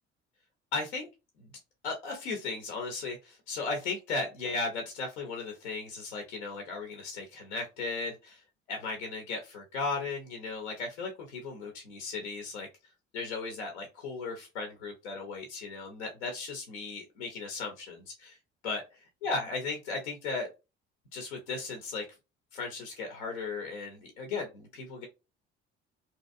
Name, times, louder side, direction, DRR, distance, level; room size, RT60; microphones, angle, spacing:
voice 1, 0.7-1.1 1.8-8.4 8.7-12.7 13.1-18.4 18.6-18.8 19.2-20.5 21.1-22.1 22.5-25.0, left 3 dB, 90° left, 3 dB, 0.6 m, -36 dB
2.9 x 2.6 x 2.5 m, 0.27 s
hypercardioid pair, 55°, 33 cm